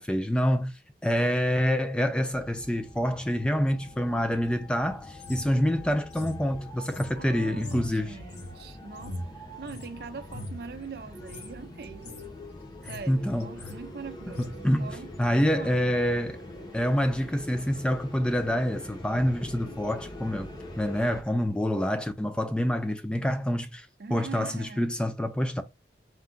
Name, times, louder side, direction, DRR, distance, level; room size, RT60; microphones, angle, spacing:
voice 1, 0.0-8.2 13.1-13.5 14.4-16.4 16.7-20.5 20.8-25.6, equal, 5° left, 0.3 m, -27 dB
sound 1, 2.3-21.2, left 1 dB, 25° left, 0.7 m, -44 dB
sound 2, 5.2-9.9 10.2-10.7 11.2-11.5 11.8-12.3 12.6-13.1 13.4-13.8 14.3-14.5, left 1 dB, 75° left, 1.0 m, -41 dB
voice 2, 7.2-9.2 9.6-12.0 12.9-14.5 14.8-15.1 15.6-15.9 24.0-24.9, right 4 dB, 60° right, 0.4 m, -42 dB
4.4 x 2.2 x 3.7 m
head